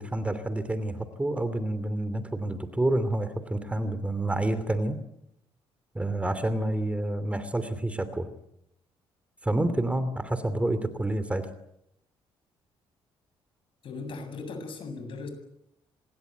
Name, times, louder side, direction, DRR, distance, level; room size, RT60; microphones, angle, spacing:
voice 1, 0.0-5.0 5.9-8.3 9.4-11.4, right 1 dB, 15° right, 12 dB, 2.8 m, -28 dB
voice 2, 13.8-15.3, left 3 dB, 60° left, 8 dB, 7.8 m, -38 dB
26.0 x 21.0 x 9.5 m, 0.80 s
cardioid pair, 100°, 10 cm